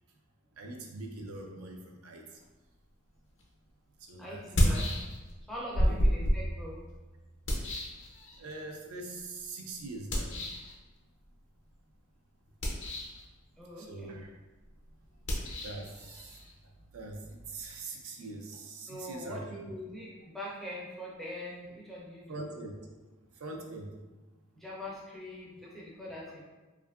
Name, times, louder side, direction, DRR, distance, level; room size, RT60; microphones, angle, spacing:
voice 1, 0.6-2.4 4.0-4.8 5.8-5.9 8.4-10.4 13.8-14.3 15.6-16.4 16.9-19.4 22.3-22.7 23.3-23.9, right 2 dB, 70° right, 1 dB, 0.4 m, -43 dB
sound 1, 3.4-3.5 4.4-5.4 5.7-8.6 10.1-10.7 12.5-13.2 15.2-17.8, equal, 55° left, 0.5 m, -31 dB
voice 2, 4.2-4.9 5.5-6.8 13.6-14.1 18.9-22.4 24.5-26.4, left 1 dB, ahead, -6 dB, 0.4 m, -42 dB
2.6 x 2.4 x 2.3 m, 1.2 s
head